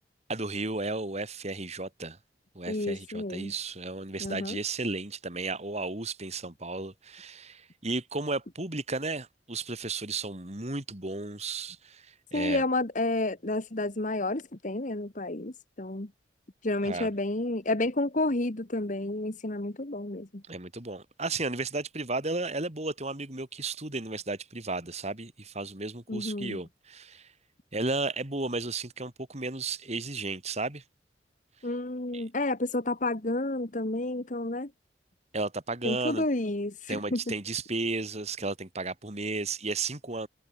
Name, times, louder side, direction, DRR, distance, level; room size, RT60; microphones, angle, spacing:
voice 1, 0.3-2.2 2.5-12.6 16.8-17.1 20.5-27.3 27.7-30.8 32.1-32.2 35.3-36.2 36.9-40.3, right 3 dB, 40° right, 3.3 m, -34 dB
voice 2, 2.7-3.5 4.2-4.6 12.3-16.1 16.6-20.4 26.1-26.6 31.6-34.7 35.8-37.2, left 2 dB, 45° left, 1.6 m, -30 dB
head